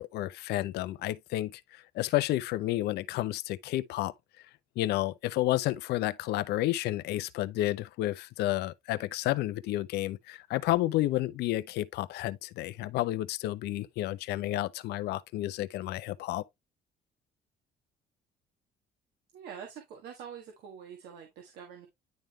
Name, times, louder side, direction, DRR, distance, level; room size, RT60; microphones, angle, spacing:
voice 1, 0.0-4.1 4.8-16.4, left 16 dB, 80° left, 0.6 m, -31 dB
voice 2, 19.3-21.9, right 7 dB, 80° right, 1.7 m, -45 dB
10.5 x 3.6 x 3.1 m
cardioid pair, 110°, 17 cm